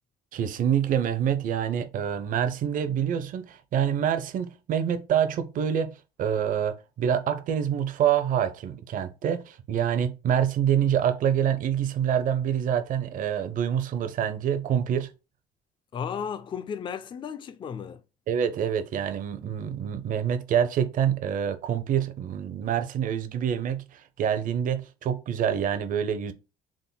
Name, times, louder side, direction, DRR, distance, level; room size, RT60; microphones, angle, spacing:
voice 1, 0.3-15.1 18.3-26.3, right 9 dB, 55° right, 0.5 m, -26 dB
voice 2, 15.9-18.0, left 7 dB, 30° left, 0.3 m, -34 dB
3.6 x 2.1 x 3.8 m
cardioid pair, 110°, 17 cm